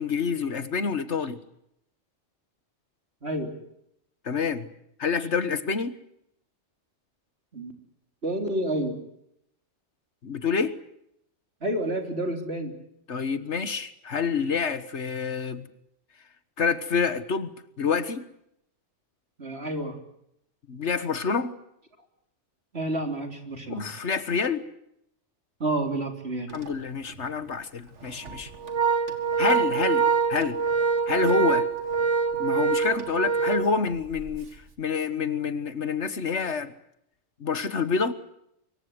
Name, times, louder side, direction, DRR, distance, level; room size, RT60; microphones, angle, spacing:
voice 1, 0.0-1.4 4.2-4.7 5.0-5.9 10.2-10.8 13.1-15.7 16.6-17.5 17.8-18.2 20.7-21.5 23.7-24.6 26.5-28.5 29.4-30.0 30.3-30.6 31.1-31.7 32.4-34.5 34.8-36.7 37.4-38.1, left 5 dB, 70° left, 13 dB, 1.8 m, -27 dB
voice 2, 3.2-3.5 7.5-7.7 8.2-9.0 11.6-12.7 19.4-20.0 22.7-23.9 25.6-26.5, right 1 dB, 60° right, 4 dB, 3.9 m, -29 dB
Organ, 26.5-26.7 27.1-27.2 28.0-34.4, right 5 dB, 80° right, 2.4 m, -25 dB
24.5 x 23.5 x 8.0 m, 0.77 s
omnidirectional pair, 1.2 m